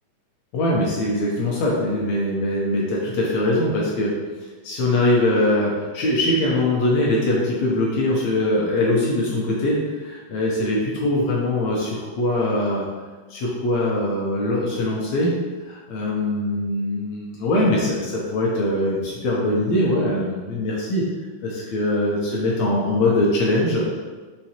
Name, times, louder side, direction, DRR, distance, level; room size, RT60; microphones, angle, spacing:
voice 1, 0.5-4.1 4.4-12.9 13.3-15.3 15.7-21.0 21.4-24.0, left 1 dB, 75° left, -4 dB, 1.6 m, -22 dB
5.6 x 3.1 x 2.8 m, 1.3 s
omnidirectional pair, 3.7 m